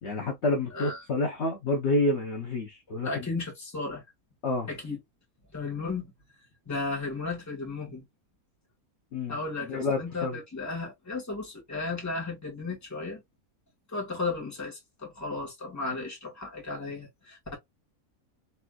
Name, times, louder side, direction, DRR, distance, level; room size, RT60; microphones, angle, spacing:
voice 1, 0.0-3.3 4.4-4.7 9.1-10.4, left 2 dB, 55° left, 1.0 m, -29 dB
voice 2, 0.7-1.0 3.0-4.0 4.7-5.0 5.5-6.1 6.7-8.0 9.3-13.2 13.9-17.6, left 3 dB, 10° left, 1.1 m, -34 dB
3.4 x 2.7 x 2.2 m
omnidirectional pair, 1.6 m